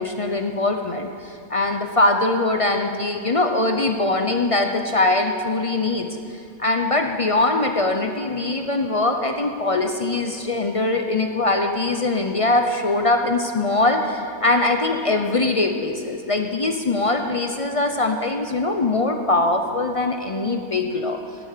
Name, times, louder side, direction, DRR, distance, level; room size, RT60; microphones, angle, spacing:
voice 1, 0.0-6.1 6.6-21.2, left 2 dB, 40° left, 4 dB, 0.4 m, -22 dB
16.0 x 8.2 x 6.7 m, 2.5 s
omnidirectional pair, 1.5 m